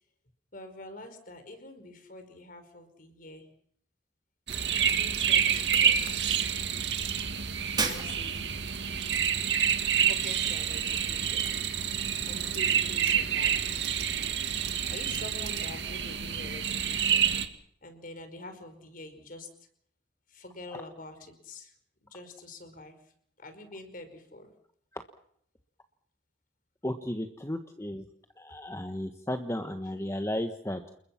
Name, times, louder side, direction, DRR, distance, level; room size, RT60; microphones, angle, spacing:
voice 1, 0.5-3.5 4.6-6.4 7.8-8.7 9.9-11.5 12.2-13.8 14.6-17.3 17.8-19.5 20.3-21.7 22.1-22.9 23.4-24.5, left 2 dB, 50° left, 9 dB, 4.9 m, -46 dB
sound 1, 4.5-17.5, right 8 dB, 70° right, 2.2 m, -28 dB
Shatter, 7.8-8.6, right 4 dB, 25° right, 3.0 m, -31 dB
voice 2, 26.8-28.0 28.4-30.9, left 1 dB, 15° left, 6 dB, 1.4 m, -34 dB
29.5 x 21.5 x 5.9 m, 0.66 s
head